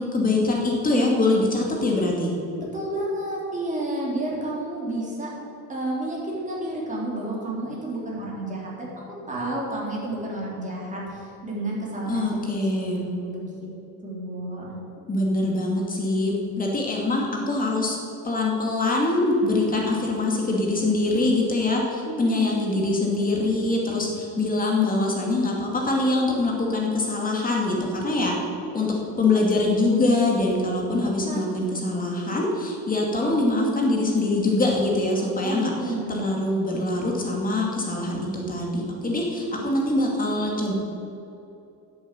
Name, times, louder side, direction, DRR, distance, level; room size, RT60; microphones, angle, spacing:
voice 1, 0.0-2.3 12.1-13.0 15.1-18.0 18.2-28.4 28.7-40.7, left 2 dB, 20° left, -1 dB, 2.5 m, -24 dB
voice 2, 2.7-5.3 5.7-8.9 9.3-12.3 12.7-12.8 13.2-13.5 14.0-14.7 22.1-22.5 31.3-31.4 35.4-36.3 39.6-39.8, right 1 dB, 20° right, -4 dB, 3.5 m, -30 dB
10.5 x 8.0 x 8.4 m, 2.8 s
cardioid pair, 145°, 40 cm